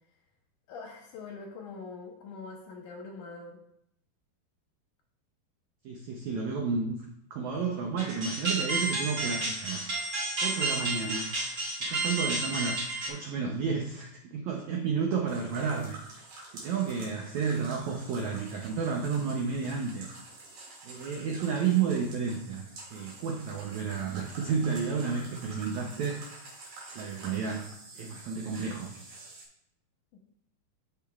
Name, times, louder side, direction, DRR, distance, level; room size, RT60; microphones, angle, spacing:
voice 1, 0.7-3.6 30.1-30.2, left 4 dB, 70° left, 1 dB, 2.1 m, -43 dB
voice 2, 5.8-7.0 7.3-11.3 11.8-16.2 16.5-20.1 20.8-22.6 22.9-26.5 26.9-27.7 27.9-28.9, right 5 dB, 85° right, 1 dB, 1.6 m, -31 dB
sound 1, 8.0-13.1, right 2 dB, 35° right, 1.9 m, -31 dB
sound 2, 15.3-29.5, right 3 dB, 65° right, 3.6 m, -48 dB
13.5 x 5.1 x 2.4 m, 0.73 s
omnidirectional pair, 4.3 m